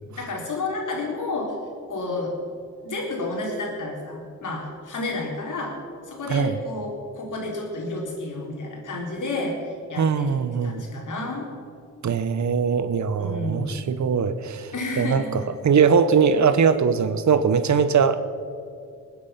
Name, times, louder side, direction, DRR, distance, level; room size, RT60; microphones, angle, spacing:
voice 1, 0.0-1.5 1.9-2.3 2.8-5.7 6.1-11.5 13.2-13.7 14.7-15.5, left 2 dB, 65° left, -1 dB, 4.2 m, -31 dB
voice 2, 9.9-10.9 12.0-18.2, right 6 dB, 60° right, 12 dB, 1.0 m, -21 dB
20.0 x 9.6 x 5.9 m, 2.4 s
supercardioid pair, 50°, 33 cm